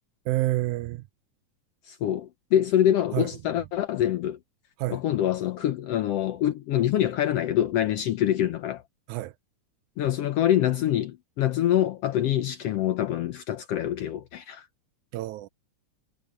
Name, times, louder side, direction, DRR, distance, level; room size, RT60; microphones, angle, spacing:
voice 1, 0.3-1.1 3.1-3.3 4.8-5.0 9.1-9.3 15.1-15.5, right 17 dB, 80° right, 2.0 m, -28 dB
voice 2, 1.9-4.4 4.9-8.8 10.0-14.7, left 11 dB, 75° left, 1.5 m, -25 dB
omnidirectional pair, 3.6 m